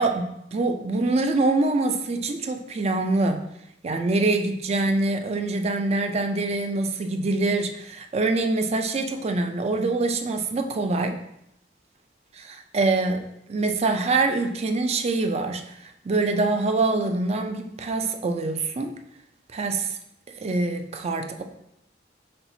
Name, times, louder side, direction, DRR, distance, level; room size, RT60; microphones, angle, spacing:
voice 1, 0.0-3.4 3.8-11.2 12.7-18.9 19.5-20.0 20.3-21.4, right 3 dB, 35° right, 6 dB, 0.4 m, -25 dB
4.3 x 4.1 x 2.7 m, 0.80 s
head